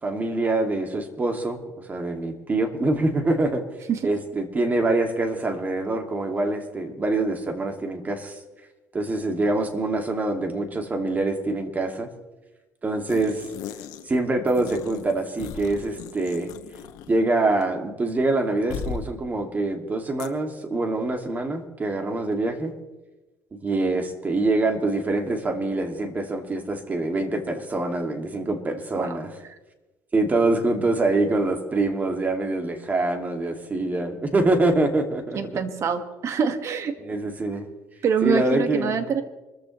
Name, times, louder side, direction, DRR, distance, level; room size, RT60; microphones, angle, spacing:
voice 1, 0.0-1.6 1.9-3.6 4.0-8.4 8.9-12.1 12.8-13.4 14.1-16.5 17.1-22.7 23.5-29.3 30.1-35.4 37.0-37.7 38.2-38.9, right 2 dB, 25° right, 5 dB, 2.3 m, -25 dB
sound 1, 13.1-14.2 14.5-17.2 17.5-17.6 18.7-19.1 20.2-20.3, left 7 dB, 80° left, 1.3 m, -37 dB
voice 2, 35.3-36.9 38.0-39.2, right 6 dB, 50° right, 7 dB, 1.8 m, -25 dB
25.0 x 14.5 x 3.2 m, 1.1 s
cardioid pair, 110°, 6 cm